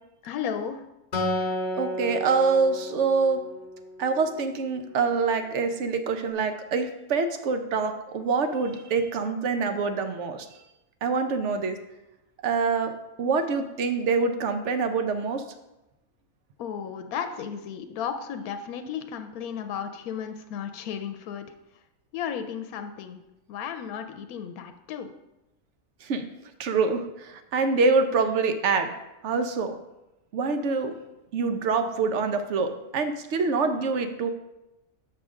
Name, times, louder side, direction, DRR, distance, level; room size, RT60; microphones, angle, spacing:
voice 1, 0.2-0.8 16.6-21.5 22.1-23.2 23.5-25.1, left 8 dB, 90° left, 7 dB, 1.1 m, -34 dB
Acoustic guitar, 1.1-4.6, left 1 dB, 35° left, 1.1 m, -32 dB
voice 2, 1.7-3.4 4.0-10.6 11.0-11.8 12.4-12.9 13.2-15.4 26.0-26.3 26.6-28.9 29.2-29.8 30.3-31.0 31.3-34.3, right 4 dB, 60° right, 7 dB, 0.9 m, -25 dB
6.6 x 3.6 x 6.2 m, 0.94 s
omnidirectional pair, 1.5 m